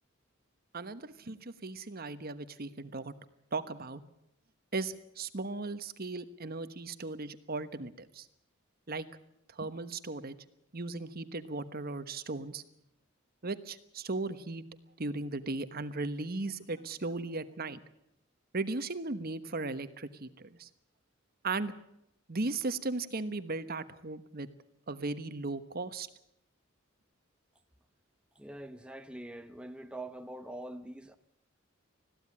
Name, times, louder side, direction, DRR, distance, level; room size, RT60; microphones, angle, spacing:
voice 1, 0.7-3.1 3.5-4.0 4.7-8.3 8.9-9.1 9.5-10.4 10.7-12.6 13.4-14.6 15.0-17.8 18.5-20.7 21.4-21.7 22.3-24.5 24.9-26.1, right 3 dB, 50° right, 1.2 m, -37 dB
voice 2, 28.3-31.1, right 1 dB, 5° right, 0.7 m, -44 dB
21.0 x 15.5 x 8.8 m
head